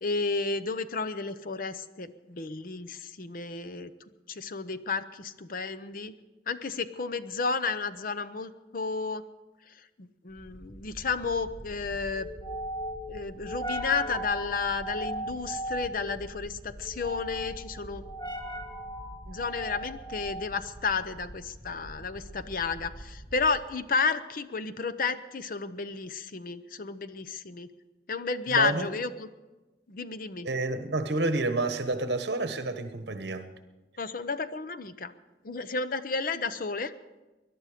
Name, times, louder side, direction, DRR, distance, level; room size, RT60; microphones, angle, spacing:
voice 1, 0.0-3.9 4.3-6.1 6.5-9.2 10.0-12.3 13.1-18.0 19.3-27.7 28.1-29.3 29.9-30.5 34.0-35.1 35.4-36.9, left 4 dB, 50° left, 0.7 m, -32 dB
sound 1, 10.4-23.7, right 1 dB, 25° left, 1.7 m, -39 dB
voice 2, 28.5-28.9 30.4-33.5, right 2 dB, 70° right, 1.2 m, -29 dB
21.0 x 11.5 x 5.0 m
head